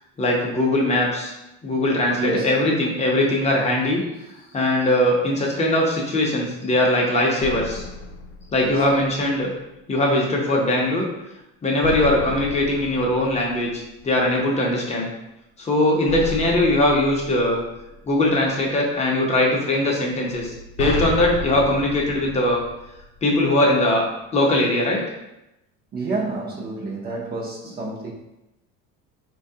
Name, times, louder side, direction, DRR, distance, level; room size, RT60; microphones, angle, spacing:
voice 1, 0.2-1.3 1.6-4.0 4.5-7.8 8.5-9.5 9.9-11.0 11.6-15.1 15.6-17.6 18.1-22.6 23.2-24.0 24.3-25.0, left 1 dB, 20° left, -1 dB, 0.6 m, -20 dB
voice 2, 2.2-2.6 8.6-8.8 25.9-28.1, right 3 dB, 30° right, -2 dB, 0.6 m, -28 dB
sound 1, 7.4-9.3 11.8-14.2 16.1-18.3 20.3-23.4, left 2 dB, 85° left, 0.6 m, -33 dB
4.2 x 2.3 x 2.7 m, 0.91 s
cardioid pair, 145°, 34 cm